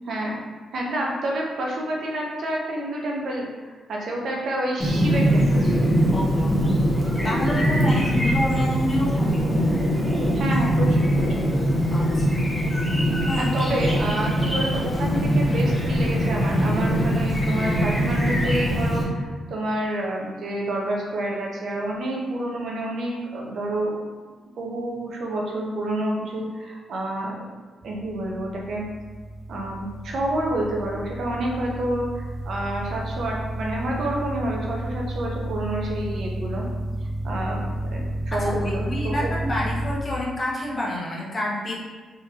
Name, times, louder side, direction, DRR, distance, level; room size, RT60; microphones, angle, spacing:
voice 1, 0.1-0.4 0.7-5.7 10.3-11.5 13.4-23.9 24.6-27.3 27.8-28.8 29.5-36.6 37.2-37.6 37.9-39.3, right 1 dB, 65° right, -2 dB, 0.7 m, -28 dB
Chirp tweet, 4.8-19.0, equal, 5° left, 0.8 m, -22 dB
voice 2, 6.1-6.8 7.2-9.5 11.9-12.4 13.2-13.5 38.3-41.7, left 1 dB, 30° left, -4 dB, 0.9 m, -28 dB
sound 1, 13.9-19.0, left 2 dB, 45° left, 0.5 m, -35 dB
sound 2, 27.8-40.0, right 1 dB, 10° right, 0.4 m, -31 dB
3.7 x 3.1 x 2.8 m, 1.4 s
cardioid pair, 115°, 0 cm